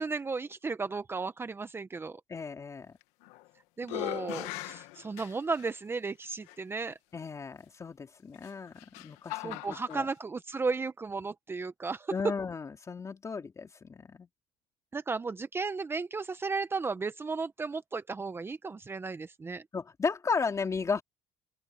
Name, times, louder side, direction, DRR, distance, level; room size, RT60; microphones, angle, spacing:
voice 1, 0.0-2.2 3.8-7.0 9.4-12.1 14.9-19.6, right 4 dB, 20° right, 0.9 m, -34 dB
voice 2, 2.3-2.9 7.1-10.1 12.1-14.3 19.7-21.0, left 5 dB, 30° left, 3.6 m, -35 dB
sound 1, 3.0-3.5 3.8-5.7 6.5-6.6 8.3-10.0, left 19 dB, 85° left, 1.6 m, -39 dB
open air
supercardioid pair, 95°, 11 cm